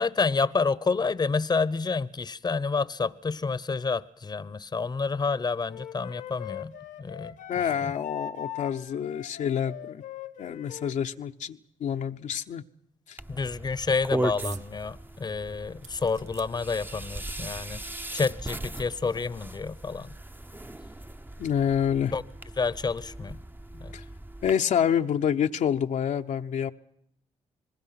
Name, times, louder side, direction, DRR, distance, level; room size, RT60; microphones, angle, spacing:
voice 1, 0.0-6.7 7.0-7.3 7.8-7.9 13.3-17.8 18.1-20.1 22.1-22.2 22.6-23.4 23.8-23.9, left 4 dB, 30° left, 0.9 m, -29 dB
Wind instrument woodwind instrument, 5.7-11.0, left 10 dB, 90° left, 1.6 m, -41 dB
voice 2, 7.5-10.0 10.4-12.6 13.1-13.2 21.4-22.1 23.9-24.0 24.4-26.7, left 8 dB, 70° left, 0.9 m, -27 dB
sound 1, 13.2-24.5, right 1 dB, 15° right, 0.8 m, -38 dB
sound 2, 14.4-14.7 15.1-15.2 15.8-17.5 18.4-18.5 18.7-18.8, right 7 dB, 60° right, 0.9 m, -46 dB
27.0 x 21.0 x 5.9 m
supercardioid pair, 55°, 13 cm